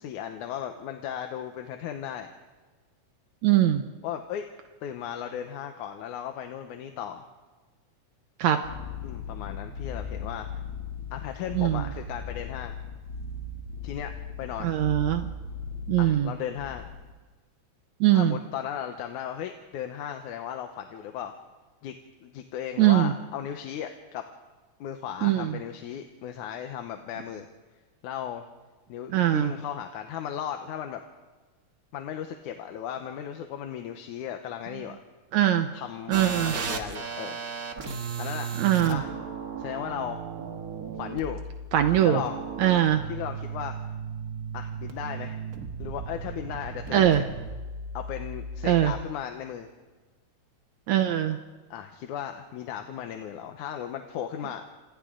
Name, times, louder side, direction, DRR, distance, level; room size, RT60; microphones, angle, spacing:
voice 1, 0.0-2.3 4.0-4.5 4.8-7.3 9.0-10.6 11.1-12.7 13.8-14.1 14.4-14.7 16.0-16.9 18.1-21.3 21.8-22.0 22.2-24.2 24.8-27.5 28.0-28.5 28.9-31.0 31.9-35.0 35.7-36.2 36.5-37.4 38.2-38.5 38.9-39.1 39.6-40.2 40.9-41.4 42.0-42.4 43.1-43.8 44.5-45.4 45.8-47.2 47.9-49.7 51.7-54.6, left 9 dB, 90° left, 6 dB, 2.5 m, -36 dB
voice 2, 3.4-3.8 8.4-8.6 11.6-11.8 14.6-15.3 15.9-16.3 18.0-18.4 22.8-23.1 25.2-25.5 29.1-29.5 35.3-35.7 36.1-36.5 38.6-39.0 41.7-42.2 42.6-43.0 46.9-47.2 48.6-48.9 50.9-51.4, right 12 dB, 75° right, 7 dB, 2.1 m, -21 dB
sound 1, 8.6-17.1, left 4 dB, 40° left, 3.3 m, -38 dB
sound 2, 36.1-49.0, right 5 dB, 40° right, 1.4 m, -36 dB
29.0 x 27.5 x 3.9 m, 1.3 s
omnidirectional pair, 3.4 m